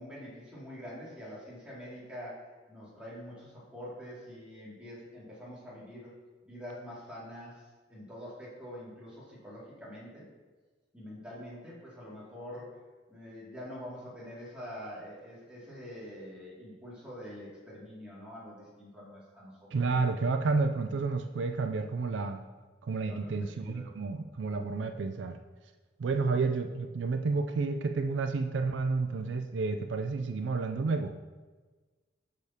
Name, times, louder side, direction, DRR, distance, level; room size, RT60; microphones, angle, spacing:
voice 1, 0.0-6.1 6.4-10.3 10.9-12.8 13.1-20.0 23.1-23.3 23.6-23.9 26.2-26.4, equal, 5° right, -8 dB, 2.3 m, -45 dB
voice 2, 19.7-22.4 22.8-25.4 26.0-31.1, right 4 dB, 75° right, 6 dB, 0.4 m, -30 dB
8.2 x 6.6 x 2.8 m, 1.3 s
head